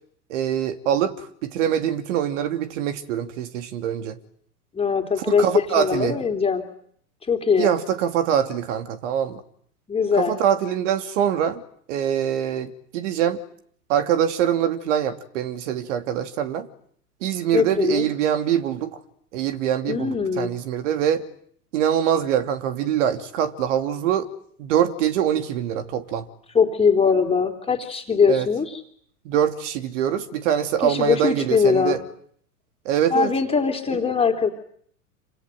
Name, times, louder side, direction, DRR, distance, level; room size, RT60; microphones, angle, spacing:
voice 1, 0.3-4.2 5.2-6.3 7.6-9.4 10.1-11.6 11.9-13.4 13.9-16.7 17.2-19.0 19.3-21.3 21.7-24.3 24.6-26.3 28.3-28.5 29.2-32.0 32.8-33.3 33.9-34.0, right 9 dB, 50° right, 2.9 m, -24 dB
voice 2, 4.7-6.6 7.3-7.7 9.9-10.3 17.5-18.0 19.9-20.5 26.5-28.8 30.8-32.0 33.1-34.5, left 6 dB, 10° left, 3.5 m, -21 dB
28.0 x 27.0 x 7.8 m
figure-of-eight pair, 105°, 46 cm